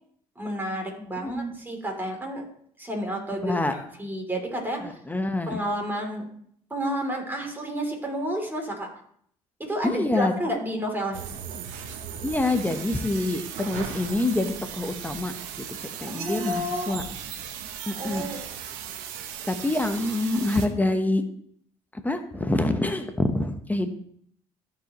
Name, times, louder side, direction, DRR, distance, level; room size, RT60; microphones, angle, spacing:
voice 1, 0.4-2.5 2.8-5.0 5.5-6.2 6.7-8.9 9.6-11.2 16.1-17.0 17.9-18.4, equal, 15° right, 1 dB, 3.1 m, -30 dB
voice 2, 1.2-1.6 3.4-3.7 4.8-5.6 9.8-10.3 12.2-17.0 17.9-18.3 19.5-21.2 21.9-23.9, left 2 dB, 10° left, 7 dB, 1.0 m, -26 dB
sound 1, 11.1-20.7, right 8 dB, 85° right, 0.9 m, -37 dB
14.0 x 5.0 x 3.1 m, 0.63 s
supercardioid pair, 70°, 14 cm